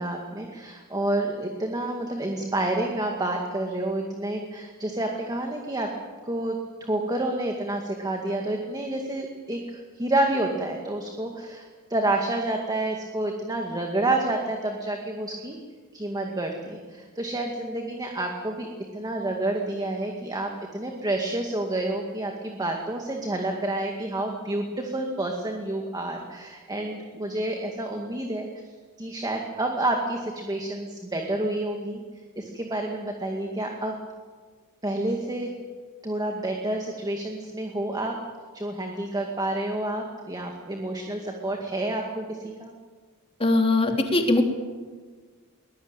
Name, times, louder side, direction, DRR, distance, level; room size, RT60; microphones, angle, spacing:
voice 1, 0.0-5.9 6.3-15.6 15.9-18.7 18.9-28.5 29.0-32.0 32.4-34.0 34.8-35.5 36.0-38.1 38.5-42.7, right 1 dB, 20° right, 2 dB, 2.2 m, -29 dB
voice 2, 43.4-44.4, left 2 dB, 25° left, 3 dB, 3.0 m, -21 dB
22.5 x 21.0 x 9.1 m, 1.5 s
head